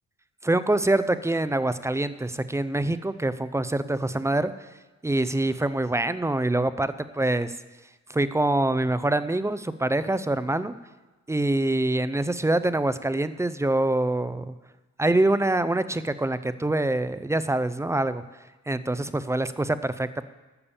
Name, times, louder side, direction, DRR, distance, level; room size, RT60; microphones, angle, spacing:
voice 1, 0.4-4.5 5.0-7.5 8.1-10.7 11.3-14.5 15.0-18.2 18.7-20.2, right 2 dB, 10° right, 14 dB, 0.5 m, -25 dB
12.5 x 6.8 x 7.1 m, 1.1 s
cardioid pair, 90°, 30 cm